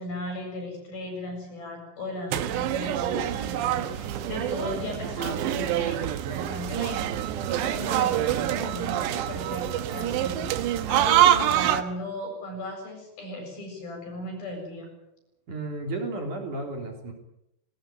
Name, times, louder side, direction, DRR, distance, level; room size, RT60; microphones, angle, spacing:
voice 1, 0.0-6.0 6.3-14.9, left 1 dB, 55° left, 3 dB, 9.7 m, -36 dB
sound 1, 2.3-11.8, right 11 dB, 80° right, 3.4 m, -26 dB
voice 2, 15.5-17.1, right 2 dB, 45° right, 3 dB, 4.6 m, -33 dB
20.5 x 19.5 x 9.3 m, 0.85 s
omnidirectional pair, 5.1 m